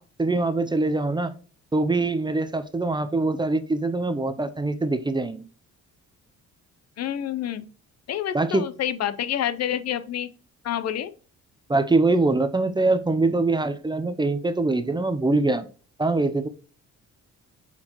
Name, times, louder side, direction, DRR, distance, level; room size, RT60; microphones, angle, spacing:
voice 1, 0.2-1.3 1.7-5.5 8.3-8.6 11.7-15.7 16.0-16.5, right 2 dB, 15° right, 10 dB, 0.5 m, -23 dB
voice 2, 7.0-7.7 8.1-10.3 10.6-11.1, left 10 dB, 60° left, 13 dB, 0.6 m, -28 dB
7.5 x 4.5 x 3.0 m, 0.38 s
cardioid pair, 90°, 30 cm